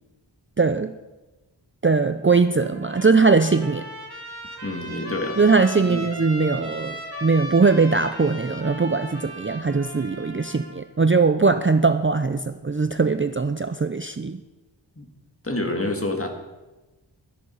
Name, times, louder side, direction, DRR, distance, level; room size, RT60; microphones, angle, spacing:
voice 1, 0.6-0.9 1.8-3.9 5.4-14.4, right 4 dB, 25° right, 9 dB, 0.5 m, -20 dB
Trumpet, 2.6-10.8, equal, 55° right, 2.8 m, -37 dB
voice 2, 4.6-5.4 5.9-6.0 15.0-15.1 15.4-16.3, left 2 dB, 30° left, 4 dB, 1.9 m, -27 dB
12.5 x 10.5 x 5.5 m, 1.1 s
wide cardioid pair, 60°, 45 cm